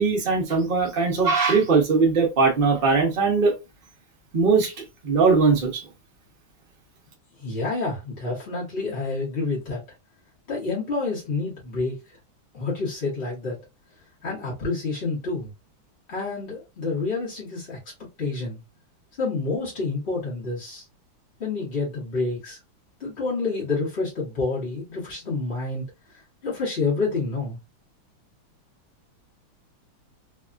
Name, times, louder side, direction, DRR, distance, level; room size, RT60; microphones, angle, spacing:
voice 1, 0.0-3.5 4.3-4.7 5.0-5.8, right 4 dB, 70° right, 0.5 m, -20 dB
voice 2, 7.4-9.8 10.5-12.0 12.5-13.6 14.2-15.5 16.1-17.8 18.2-18.6 19.2-20.8 21.4-22.6 23.0-25.8 26.4-27.6, left 3 dB, 40° left, 0.9 m, -28 dB
3.4 x 2.3 x 2.4 m
omnidirectional pair, 2.2 m